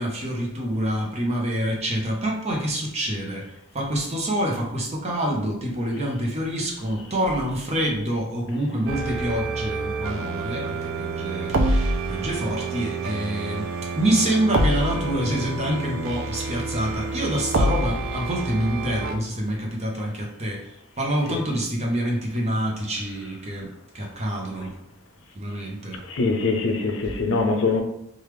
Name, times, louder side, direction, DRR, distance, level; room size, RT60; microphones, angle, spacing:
voice 1, 0.0-13.7 13.9-24.7 25.4-26.0 27.0-27.1, right 1 dB, 35° right, 0.7 m, -26 dB
sound 1, 8.9-19.2, right 2 dB, 75° right, 0.4 m, -27 dB
voice 2, 26.1-27.8, left 3 dB, 75° left, 0.5 m, -23 dB
3.3 x 2.4 x 3.1 m
head